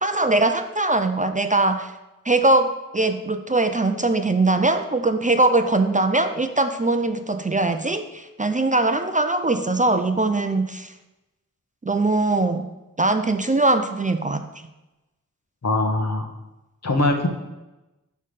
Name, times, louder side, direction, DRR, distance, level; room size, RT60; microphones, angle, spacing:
voice 1, 0.0-1.9 2.3-10.9 11.8-12.7 13.0-14.5, right 2 dB, 25° right, 8 dB, 0.5 m, -21 dB
voice 2, 15.6-16.3 16.8-17.3, left 2 dB, 55° left, 4 dB, 1.2 m, -21 dB
5.6 x 5.4 x 6.5 m, 1.0 s
wide cardioid pair, 60°, 32 cm